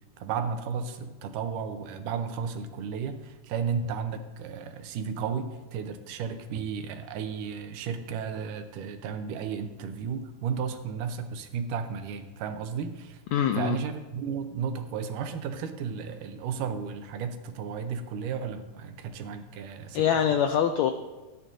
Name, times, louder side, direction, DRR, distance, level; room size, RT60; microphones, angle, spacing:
voice 1, 0.2-13.2 13.5-20.2, right 6 dB, 85° right, 8 dB, 2.4 m, -33 dB
voice 2, 13.3-13.8 19.9-20.9, left 9 dB, 85° left, 7 dB, 1.5 m, -24 dB
16.0 x 9.8 x 2.6 m, 1.2 s
omnidirectional pair, 3.7 m